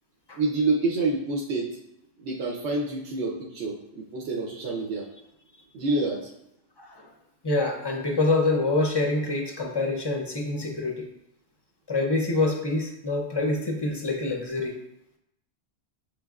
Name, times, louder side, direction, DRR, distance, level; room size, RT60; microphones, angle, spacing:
voice 1, 0.3-1.7 2.2-5.0 5.7-6.3, right 3 dB, 80° right, -3 dB, 1.0 m, -27 dB
voice 2, 6.8-7.1 7.4-11.1 11.9-14.8, left 2 dB, 35° left, 1 dB, 0.4 m, -26 dB
6.8 x 3.2 x 2.3 m, 0.81 s
omnidirectional pair, 1.1 m